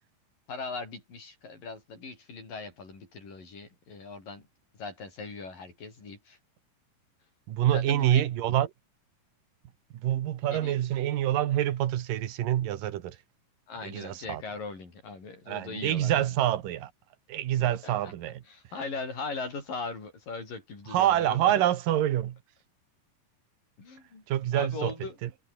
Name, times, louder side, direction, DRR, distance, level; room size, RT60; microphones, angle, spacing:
voice 1, 0.5-4.5 4.8-6.4 7.7-8.3 10.5-10.8 13.7-16.3 17.6-18.1 18.5-21.6 23.8-24.2 24.5-25.2, left 4 dB, 80° left, 8.8 m, -39 dB
voice 2, 7.5-8.7 10.0-13.2 13.8-14.4 15.5-16.9 17.3-18.4 20.9-22.4 24.3-24.9 25.2-25.3, right 12 dB, 80° right, 3.1 m, -26 dB
omnidirectional pair, 3.9 m